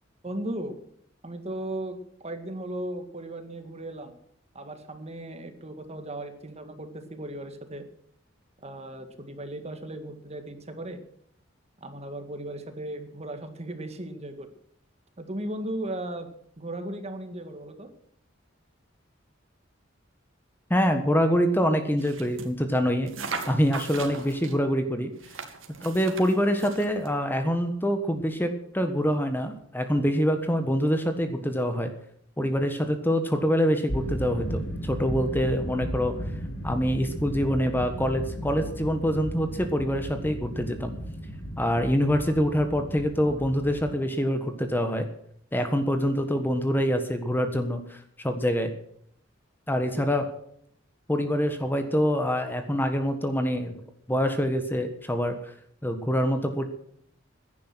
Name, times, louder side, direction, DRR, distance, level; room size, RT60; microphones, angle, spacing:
voice 1, 0.2-0.8 1.2-4.1 4.5-7.9 8.6-11.0 11.8-14.5 15.2-16.3 16.6-17.9, right 1 dB, 35° right, 7 dB, 2.0 m, -36 dB
voice 2, 20.7-23.1 23.5-25.1 25.8-31.9 32.4-36.2 36.6-40.9 41.6-45.1 45.5-48.7 49.7-50.3 51.1-53.8 54.1-55.5 55.8-56.6, equal, 10° left, 7 dB, 1.4 m, -25 dB
sound 1, 22.0-22.5 23.1-24.6 25.2-27.1, right 4 dB, 85° right, 2.3 m, -38 dB
sound 2, 33.9-43.9, equal, 80° left, 4.1 m, -35 dB
16.0 x 11.0 x 6.2 m, 0.67 s
head